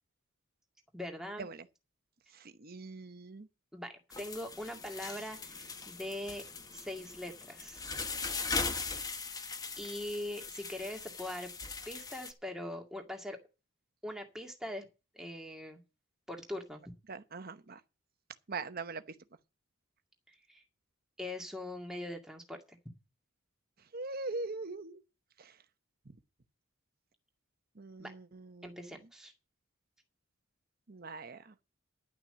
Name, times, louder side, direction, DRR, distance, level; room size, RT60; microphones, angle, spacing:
voice 1, 0.9-1.5 3.7-6.5 6.7-7.8 9.8-11.5 11.9-13.4 14.0-14.9 15.1-15.8 16.3-16.8 20.3-20.6 21.2-22.8 28.0-28.1 28.6-29.3, left 1 dB, 5° right, 2.1 m, -42 dB
voice 2, 2.3-3.5 17.1-17.8 18.5-19.0 23.9-25.0 25.4-25.5 27.8-28.8 30.9-31.5, right 3 dB, 45° right, 0.9 m, -42 dB
sound 1, 4.1-12.3, left 4 dB, 20° left, 0.9 m, -40 dB
11.5 x 6.0 x 7.7 m
head